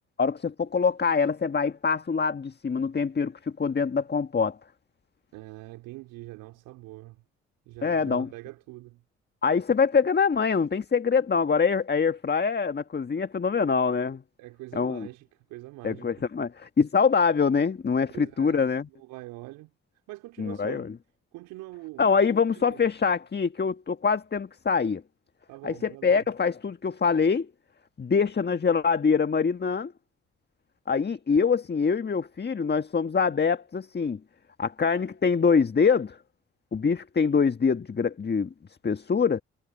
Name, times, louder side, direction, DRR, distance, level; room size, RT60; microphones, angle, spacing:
voice 1, 0.2-4.6 7.8-8.3 9.4-14.2 14.7-15.1 15.8-18.9 20.4-20.9 22.0-25.0 25.6-27.5 28.0-29.9 30.9-34.2 34.6-36.2 36.7-38.5 38.8-39.4, left 5 dB, 30° left, 1.6 m, -24 dB
voice 2, 5.3-7.2 7.7-9.0 14.4-16.3 18.1-18.6 18.9-19.7 20.1-20.9 21.3-22.1 22.5-22.9 25.5-26.2, right 20 dB, 75° right, 4.2 m, -43 dB
hypercardioid pair, 50°, 32 cm